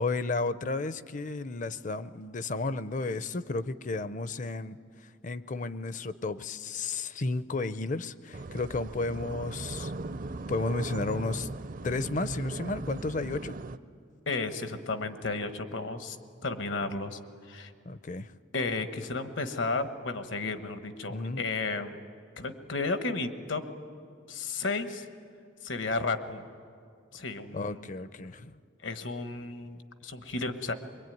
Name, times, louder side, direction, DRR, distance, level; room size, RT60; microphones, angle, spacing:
voice 1, 0.0-9.9 10.5-11.5 11.8-13.6 17.8-18.3 21.1-21.4 27.5-28.6, left 3 dB, 40° left, 14 dB, 0.6 m, -33 dB
sound 1, 8.3-13.8, right 2 dB, 45° right, 0.6 m, -38 dB
voice 2, 14.3-16.2 16.4-17.2 17.5-17.7 18.5-22.0 22.4-23.6 24.3-25.1 25.6-26.5 27.1-27.8 28.8-30.7, left 3 dB, 75° left, 9 dB, 1.3 m, -33 dB
23.0 x 22.5 x 9.3 m, 2.3 s
head